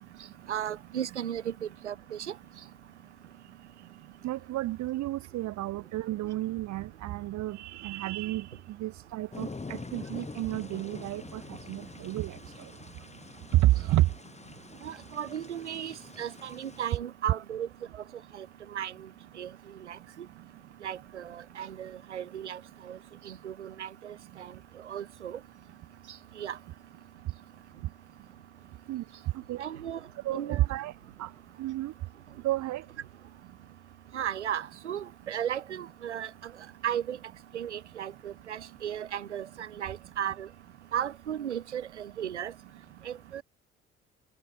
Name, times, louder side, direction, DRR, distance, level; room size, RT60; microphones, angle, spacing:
voice 1, 0.5-1.5 1.8-2.2 14.8-17.7 18.4-18.5 18.7-18.9 19.4-19.5 19.9-20.0 20.8-22.6 22.9-23.0 23.3-24.5 24.9-25.4 26.4-26.6 29.6-30.0 30.3-30.7 34.1-36.3 36.8-37.2 37.5-40.5 40.9-42.5 43.1-43.4, right 9 dB, 80° right, 1.8 m, -35 dB
voice 2, 4.2-12.4 13.5-14.1 28.9-29.0 29.5-29.6 30.2-30.9 31.2-31.3 31.6-31.9 32.4-32.8, right 16 dB, 55° right, 2.6 m, -30 dB
sound 1, 9.3-17.0, left 3 dB, 20° left, 4.7 m, -45 dB
figure-of-eight pair, 55°, 34 cm